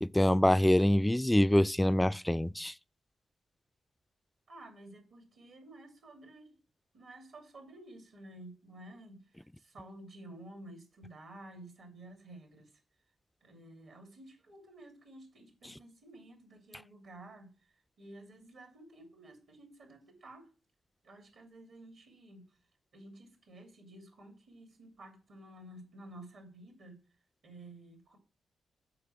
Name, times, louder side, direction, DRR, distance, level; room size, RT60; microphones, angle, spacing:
voice 1, 0.0-2.7, left 1 dB, 10° left, 0.3 m, -25 dB
voice 2, 4.5-6.6 6.9-12.7 13.4-20.5 21.0-22.6 22.9-27.0 27.4-28.2, right 1 dB, 75° right, 2.5 m, -52 dB
6.8 x 4.6 x 6.1 m
supercardioid pair, 45°, 0 cm